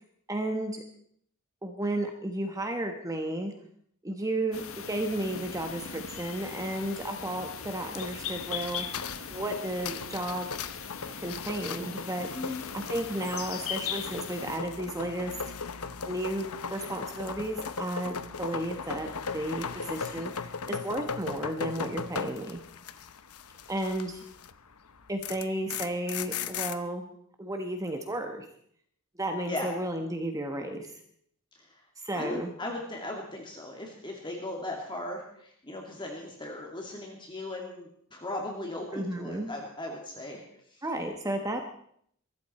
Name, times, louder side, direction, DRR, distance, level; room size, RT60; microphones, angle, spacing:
voice 1, 0.3-0.8 1.6-3.5 4.0-8.9 9.3-10.5 11.2-12.3 12.7-15.3 16.0-20.3 20.7-22.6 23.7-24.2 25.1-27.1 27.4-28.5 29.2-31.0 32.0-32.5 38.9-39.5 40.8-41.6, right 1 dB, 15° right, 5 dB, 1.3 m, -33 dB
sound 1, 4.5-14.6, left 7 dB, 70° left, 1.4 m, -39 dB
sound 2, 8.0-24.6 24.9-26.7, left 6 dB, 90° left, 0.9 m, -38 dB
voice 2, 32.1-40.4, left 1 dB, 20° left, 0 dB, 2.5 m, -37 dB
23.0 x 13.5 x 4.4 m, 0.67 s
head